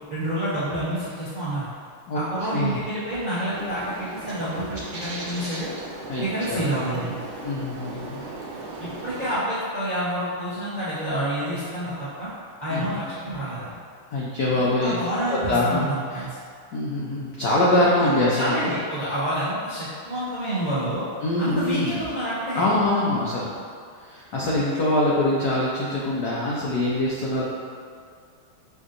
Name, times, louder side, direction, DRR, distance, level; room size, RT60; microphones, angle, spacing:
voice 1, 0.1-1.7 2.1-5.7 6.2-7.2 8.8-12.3 12.6-13.7 14.5-16.3 18.0-21.1 21.4-22.7, right 1 dB, 50° right, -13 dB, 0.5 m, -28 dB
voice 2, 2.1-2.8 6.1-6.6 7.4-8.2 12.7-13.0 14.1-15.0 15.3-15.9 16.7-18.5 21.2-21.9 22.6-23.5 24.0-27.4, left 1 dB, 85° left, -6 dB, 0.8 m, -24 dB
Bird, 3.5-9.4, right 2 dB, 70° right, 1.5 m, -37 dB
6.3 x 2.8 x 2.5 m, 2.2 s
omnidirectional pair, 2.4 m